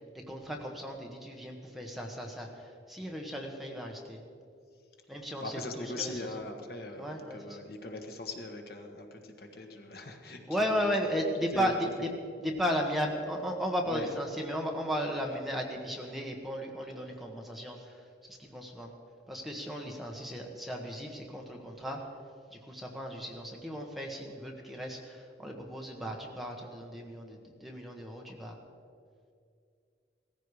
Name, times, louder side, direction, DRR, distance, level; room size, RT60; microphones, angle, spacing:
voice 1, 0.1-4.2 5.1-6.1 7.0-7.6 10.5-12.1 12.4-18.0 18.3-18.9 19.3-22.0 22.5-28.6, equal, ahead, 0 dB, 1.4 m, -35 dB
voice 2, 5.4-11.8 13.9-14.1, left 2 dB, 55° left, 3 dB, 1.5 m, -41 dB
18.0 x 14.5 x 4.9 m, 2.4 s
head